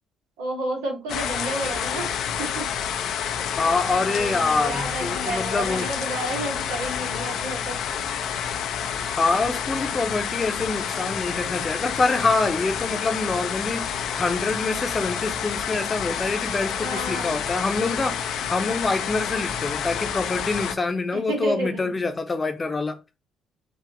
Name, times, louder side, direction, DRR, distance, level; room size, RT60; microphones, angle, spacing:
voice 1, 0.4-2.1 2.4-2.7 3.4-3.5 4.0-7.8 16.8-17.4 21.1-21.9, right 1 dB, 80° right, 1.9 m, -31 dB
sound 1, 1.1-20.8, left 8 dB, 65° left, 0.6 m, -29 dB
voice 2, 3.6-5.9 9.2-23.0, left 3 dB, 30° left, 0.9 m, -26 dB
4.7 x 2.8 x 3.9 m
hypercardioid pair, 50°, 0 cm